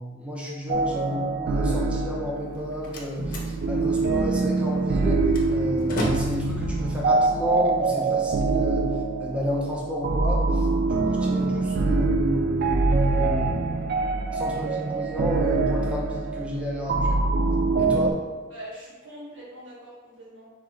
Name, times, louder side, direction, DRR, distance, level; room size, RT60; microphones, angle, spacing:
voice 1, 0.0-3.2 3.7-8.9 9.2-10.4 10.9-13.6 14.3-17.3 17.8-18.2, equal, 5° right, -4 dB, 0.7 m, -31 dB
sound 1, 0.7-18.1, right 3 dB, 50° right, 0.3 m, -24 dB
Slam, 2.4-8.3, equal, 45° left, 0.7 m, -36 dB
voice 2, 18.5-20.5, equal, 85° right, -7 dB, 1.4 m, -43 dB
3.6 x 3.1 x 4.4 m, 1.4 s
head